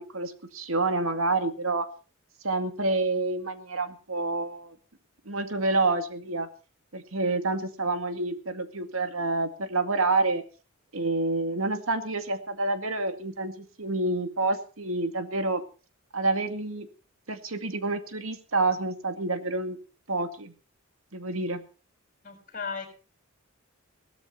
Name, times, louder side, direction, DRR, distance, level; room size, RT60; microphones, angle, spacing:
voice 1, 0.0-1.9 2.4-4.7 5.3-6.5 6.9-10.4 10.9-15.6 16.1-16.9 17.3-19.8 20.1-20.5 21.1-21.6, right 2 dB, 75° right, 8 dB, 2.2 m, -28 dB
voice 2, 22.2-22.9, left 5 dB, 40° left, 4 dB, 7.2 m, -35 dB
19.0 x 13.0 x 4.4 m, 0.36 s
head